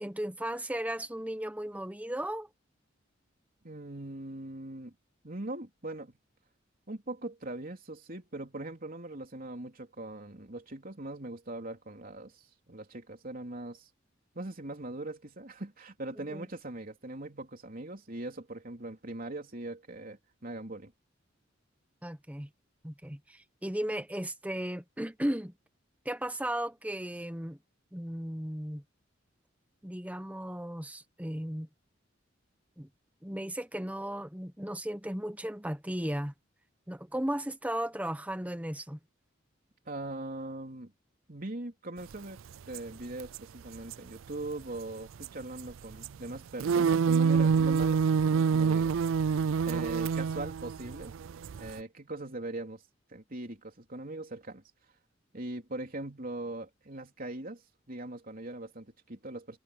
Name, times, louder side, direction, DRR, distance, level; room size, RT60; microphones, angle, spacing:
voice 1, 0.0-2.5 16.2-16.5 22.0-22.5 22.8-25.5 26.0-27.6 27.9-28.8 29.8-31.7 32.8-32.9 33.2-36.3 36.9-39.0, right 1 dB, 10° right, 1.2 m, -35 dB
voice 2, 3.6-4.9 5.2-6.2 6.9-12.4 12.7-13.9 14.3-20.9 39.8-40.9 41.3-48.0 48.3-49.1 49.7-51.1 51.5-52.8 53.1-54.6 55.3-57.6 57.9-59.6, right 2 dB, 45° right, 3.4 m, -41 dB
sound 1, 42.7-42.8 43.2-43.4 43.8-43.9 45.2-45.7 46.0-46.1 46.3-51.8, right 6 dB, 90° right, 0.4 m, -26 dB
head